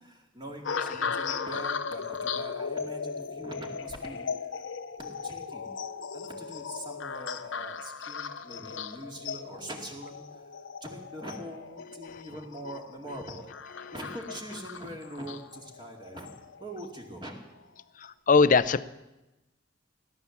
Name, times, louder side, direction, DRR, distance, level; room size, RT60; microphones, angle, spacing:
voice 1, 0.0-4.6 5.0-5.7 6.1-10.2 10.8-13.5 13.9-16.3 16.6-17.4, right 1 dB, 25° right, 1 dB, 2.4 m, -43 dB
sound 1, 0.7-17.1 17.8-18.1, left 5 dB, 75° left, 0.7 m, -37 dB
voice 2, 0.9-1.2 12.1-12.2 13.8-13.9 18.0-18.8, left 4 dB, 45° left, 16 dB, 0.5 m, -24 dB
17.5 x 11.0 x 7.2 m, 1.0 s
head